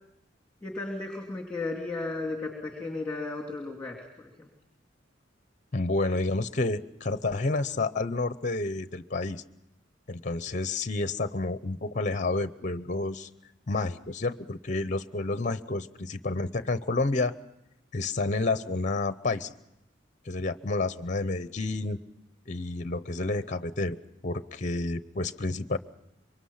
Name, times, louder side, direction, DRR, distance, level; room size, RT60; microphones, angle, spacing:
voice 1, 0.6-4.5, left 3 dB, 5° left, 0 dB, 3.0 m, -35 dB
voice 2, 5.7-9.4 10.1-13.3 13.7-17.3 17.9-19.5 20.3-22.0 22.5-24.0 24.2-25.8, left 3 dB, 40° left, 13 dB, 0.7 m, -30 dB
26.0 x 23.5 x 5.7 m, 0.87 s
head